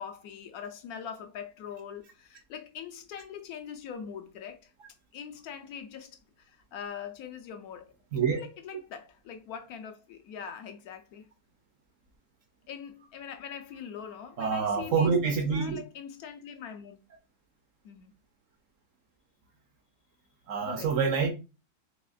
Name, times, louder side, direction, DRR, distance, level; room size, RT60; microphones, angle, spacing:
voice 1, 0.0-4.7 5.1-7.9 8.3-11.3 12.7-17.0 17.8-18.1 20.6-21.0, left 7 dB, 75° left, 1.0 m, -42 dB
voice 2, 14.4-15.8 20.5-21.3, right 5 dB, 65° right, 0.9 m, -26 dB
4.2 x 2.8 x 2.4 m
omnidirectional pair, 1.7 m